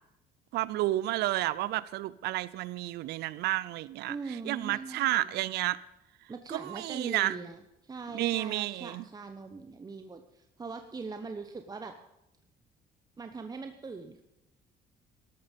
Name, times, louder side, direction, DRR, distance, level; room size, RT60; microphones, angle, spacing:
voice 1, 0.5-4.2 4.4-5.8 6.5-7.3 8.1-9.0, right 16 dB, 75° right, 0.6 m, -31 dB
voice 2, 4.1-5.4 6.3-11.9 13.2-14.2, right 4 dB, 20° right, 1.0 m, -41 dB
13.0 x 12.5 x 5.3 m
cardioid pair, 110°, 17 cm